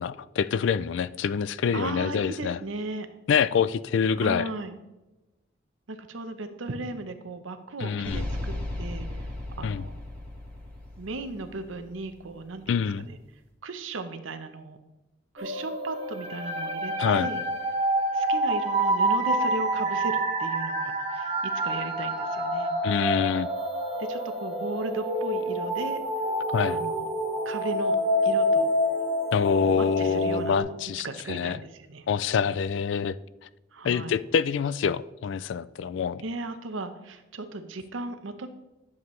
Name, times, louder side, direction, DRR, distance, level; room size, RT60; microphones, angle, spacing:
voice 1, 0.0-2.6 3.3-4.5 7.8-8.3 9.6-9.9 12.7-13.1 17.0-17.3 22.8-23.5 26.5-26.8 29.3-31.6 32.1-33.2 33.8-36.2, left 6 dB, 65° left, 17 dB, 0.3 m, -26 dB
voice 2, 1.7-3.1 4.2-4.7 5.9-9.1 9.6-9.9 11.0-13.2 13.6-14.8 15.3-17.4 18.1-22.8 24.1-26.0 26.7-27.1 27.4-28.0 28.2-28.7 29.6-30.8 31.0-32.0 33.7-34.2 36.2-38.5, right 2 dB, 80° right, 9 dB, 0.8 m, -36 dB
sound 1, 8.0-12.3, left 1 dB, 10° left, 2.0 m, -36 dB
sound 2, 15.4-30.6, right 1 dB, 30° right, 1.7 m, -27 dB
10.5 x 7.1 x 3.2 m, 1.0 s
head